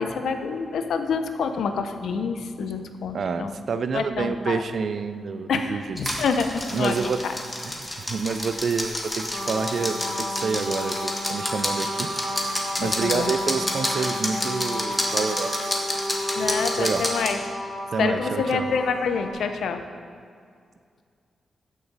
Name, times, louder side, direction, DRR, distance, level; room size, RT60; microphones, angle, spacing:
voice 1, 0.0-3.6 3.9-4.6 5.5-7.3 12.8-13.3 16.3-17.6 18.0-19.8, left 5 dB, 85° left, 7 dB, 0.7 m, -27 dB
voice 2, 3.1-6.2 6.7-7.2 7.6-12.1 12.4-15.8 16.8-17.0 17.9-18.7, right 5 dB, 60° right, 11 dB, 0.5 m, -28 dB
sound 1, 6.0-17.3, left 1 dB, 15° left, 1.5 m, -30 dB
sound 2, 9.3-19.3, equal, 40° left, 1.4 m, -32 dB
15.0 x 6.3 x 4.1 m, 2.2 s
cardioid pair, 90°, 0 cm